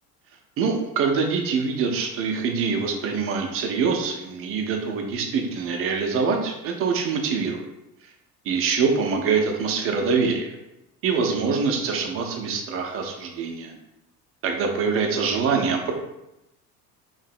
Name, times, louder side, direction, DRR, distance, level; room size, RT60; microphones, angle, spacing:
voice 1, 0.6-7.7 8.4-10.6 11.0-13.7 14.4-15.9, right 5 dB, 30° right, 3 dB, 0.5 m, -24 dB
2.9 x 2.6 x 2.5 m, 0.89 s
figure-of-eight pair, 65°, 48 cm